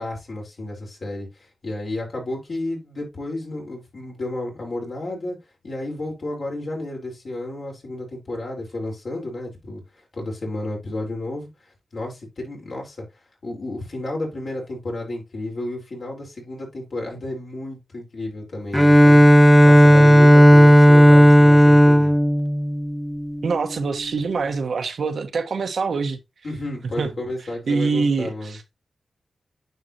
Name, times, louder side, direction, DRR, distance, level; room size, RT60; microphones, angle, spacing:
voice 1, 0.0-5.4 5.6-9.8 10.1-11.5 11.9-13.0 13.4-19.2 19.6-22.1 26.4-28.6, left 2 dB, 60° left, 4.2 m, -31 dB
Bowed string instrument, 18.7-23.5, equal, 5° left, 0.5 m, -12 dB
voice 2, 23.4-26.2 27.0-27.1 27.7-28.6, right 4 dB, 75° right, 1.2 m, -24 dB
9.4 x 5.7 x 2.9 m
cardioid pair, 65°, 0 cm